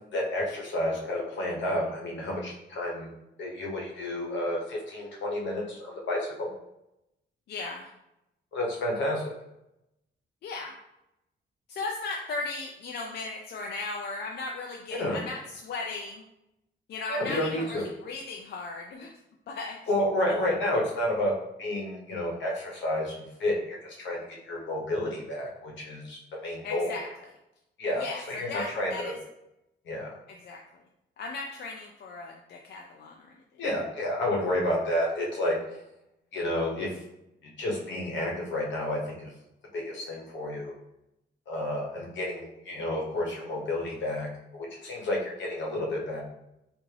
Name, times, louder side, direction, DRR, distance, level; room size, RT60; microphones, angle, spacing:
voice 1, 0.1-3.1 3.4-6.5 8.5-9.3 15.0-15.2 17.1-17.9 19.9-21.3 21.6-27.0 27.8-29.1 29.8-30.1 33.6-35.5 36.3-37.0 37.4-39.3 39.7-40.7 41.5-44.3 44.5-46.2, left 1 dB, 80° left, -2 dB, 1.0 m, -30 dB
voice 2, 7.5-7.9 10.4-10.8 11.7-16.2 16.9-19.1 19.5-19.8 26.6-27.1 28.0-28.2 28.5-29.2 30.3-30.6 31.2-33.3, left 3 dB, 60° left, 1 dB, 0.4 m, -36 dB
3.5 x 2.5 x 3.2 m, 0.87 s
wide cardioid pair, 160°, 19 cm